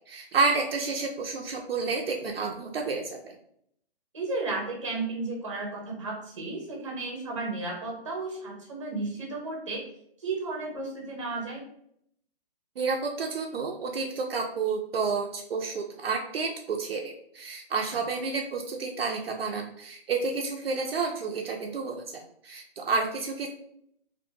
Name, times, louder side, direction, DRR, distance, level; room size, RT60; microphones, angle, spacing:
voice 1, 0.1-3.4 12.8-23.5, right 4 dB, 65° right, 2 dB, 0.5 m, -30 dB
voice 2, 4.1-9.8 10.2-11.6, right 3 dB, 30° right, -1 dB, 0.7 m, -33 dB
2.6 x 2.6 x 2.6 m, 0.69 s
hypercardioid pair, 175°, 32 cm